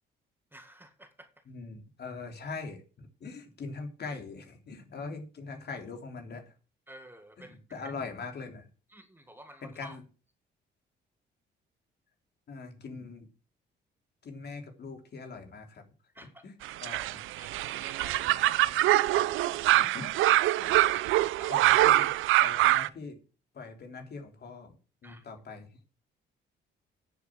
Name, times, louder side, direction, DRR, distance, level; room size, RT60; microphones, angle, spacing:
voice 1, 0.5-1.3 6.9-7.9 8.9-10.0 16.1-16.4 17.3-18.8 19.5-19.7 20.7-21.6 25.0-25.3, right 1 dB, 10° right, 1.9 m, -51 dB
voice 2, 1.5-6.5 7.4-8.7 9.6-10.0 12.5-13.3 14.2-15.8 16.4-16.5 16.8-17.2 19.7-20.1 20.6-20.7 21.5-22.1 22.4-23.2 23.5-24.8 25.0-25.7, left 4 dB, 55° left, 3.4 m, -42 dB
sound 1, 16.6-22.9, right 15 dB, 85° right, 0.6 m, -24 dB
10.0 x 7.3 x 7.7 m
cardioid pair, 90°, 20 cm